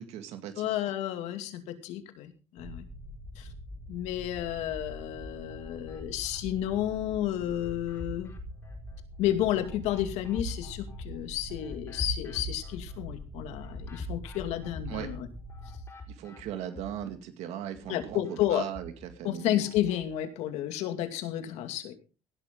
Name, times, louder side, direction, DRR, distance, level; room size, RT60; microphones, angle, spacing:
voice 1, 0.0-0.7 14.9-15.1 16.2-19.6, right 10 dB, 80° right, 7 dB, 2.3 m, -38 dB
voice 2, 0.6-2.8 3.4-3.5 3.9-8.3 9.2-15.3 17.9-18.6 19.2-21.9, left 12 dB, 85° left, 8 dB, 2.5 m, -31 dB
sound 1, 2.6-15.8, left 1 dB, 5° right, 2.4 m, -44 dB
sound 2, 4.2-5.1 5.5-7.1 7.5-17.2 17.5-20.1, left 1 dB, 25° left, 4.5 m, -44 dB
17.5 x 12.0 x 3.9 m, 0.33 s
cardioid pair, 150°, 11 cm